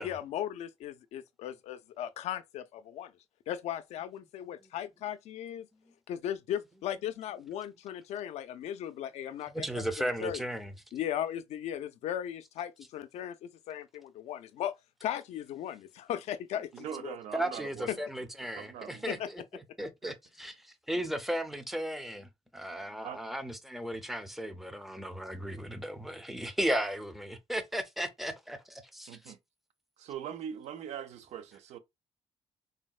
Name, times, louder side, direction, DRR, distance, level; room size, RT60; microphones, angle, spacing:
voice 1, 0.0-3.1 3.5-5.7 6.1-9.7 10.0-10.4 10.9-14.7 15.0-17.2 17.9-18.0 19.1-19.3, left 10 dB, 85° left, 0.4 m, -37 dB
voice 2, 9.4-10.7 17.3-19.4 19.8-28.6, right 1 dB, ahead, 0.4 m, -35 dB
voice 3, 16.7-18.0 18.6-19.2 20.0-20.2 23.0-23.2 29.1-29.3 30.0-31.8, right 9 dB, 85° right, 0.5 m, -42 dB
3.8 x 2.1 x 2.3 m
cardioid pair, 140°, 11 cm